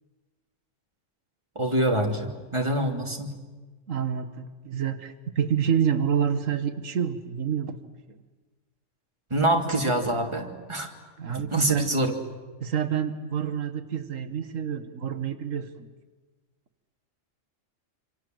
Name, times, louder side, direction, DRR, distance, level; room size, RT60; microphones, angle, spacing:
voice 1, 1.5-3.3 9.3-10.9 11.3-12.1, right 1 dB, 20° right, 2 dB, 2.8 m, -25 dB
voice 2, 3.9-7.8 8.1-8.2 11.2-11.9 12.6-15.9, right 8 dB, 90° right, 10 dB, 1.6 m, -28 dB
26.5 x 26.5 x 7.7 m, 1.3 s
omnidirectional pair, 1.3 m